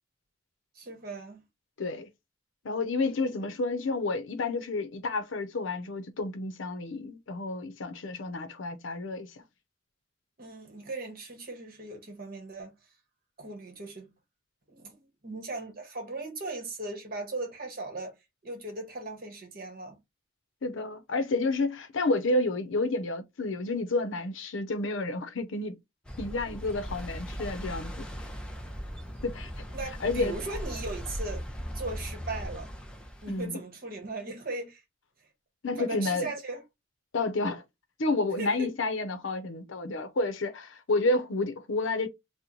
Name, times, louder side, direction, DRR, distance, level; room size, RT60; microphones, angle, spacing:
voice 1, 0.7-1.4 10.4-12.7 13.4-14.1 14.7-18.1 18.4-20.0 29.7-31.4 31.7-32.7 33.2-34.8 35.8-36.6 38.4-38.7, right 2 dB, 45° right, 1.0 m, -38 dB
voice 2, 1.8-2.1 2.6-9.4 20.6-25.8 26.2-28.1 29.2-29.5 30.0-30.3 33.3-33.6 35.6-36.3 37.1-37.6 38.0-42.1, left 2 dB, 70° left, 0.6 m, -30 dB
sound 1, 26.1-33.5, equal, 5° left, 0.5 m, -38 dB
3.0 x 2.1 x 3.8 m
head